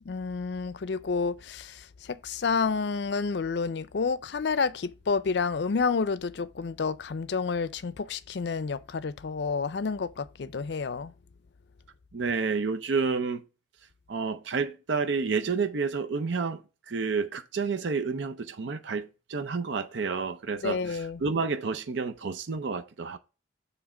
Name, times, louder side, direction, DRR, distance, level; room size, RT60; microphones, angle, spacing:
voice 1, 0.1-11.1 20.6-21.2, left 5 dB, 60° left, 0.4 m, -29 dB
voice 2, 12.1-13.4 14.1-23.2, right 4 dB, 70° right, 0.6 m, -30 dB
7.2 x 3.3 x 4.8 m
head